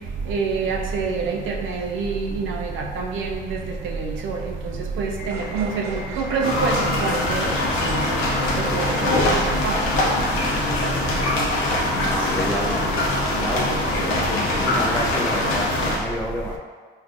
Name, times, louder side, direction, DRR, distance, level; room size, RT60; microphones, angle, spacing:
voice 1, 0.3-3.4 4.0-4.4 5.0-7.5 7.9-8.0 8.7-8.8 9.6-9.8, right 5 dB, 80° right, 1 dB, 0.4 m, -26 dB
sound 1, 5.2-9.6, right 1 dB, 10° right, 1.0 m, -36 dB
sound 2, 5.7-6.4 6.7-12.7, left 2 dB, 40° left, 1.1 m, -39 dB
sound 3, 6.4-16.0, left 1 dB, 90° left, 0.6 m, -23 dB
voice 2, 11.9-12.8 13.4-13.7 14.1-16.6, left 1 dB, 5° left, -3 dB, 0.5 m, -29 dB
3.4 x 2.4 x 2.5 m, 1.5 s
cardioid pair, 90°, 20 cm